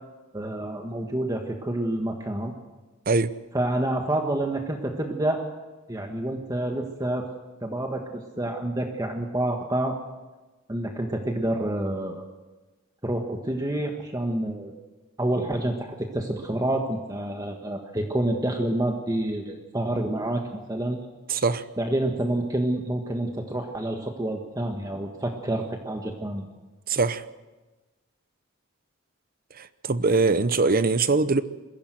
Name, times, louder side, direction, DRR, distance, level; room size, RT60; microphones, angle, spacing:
voice 1, 0.3-2.5 3.5-5.4 5.9-7.3 7.6-10.0 10.7-12.3 13.0-14.7 15.2-21.0 21.3-21.4 21.8-26.5, right 1 dB, 20° right, 1.5 m, -28 dB
voice 2, 21.3-21.6 26.9-27.2 29.6-31.4, right 3 dB, 45° right, 0.8 m, -22 dB
22.0 x 16.0 x 7.9 m
head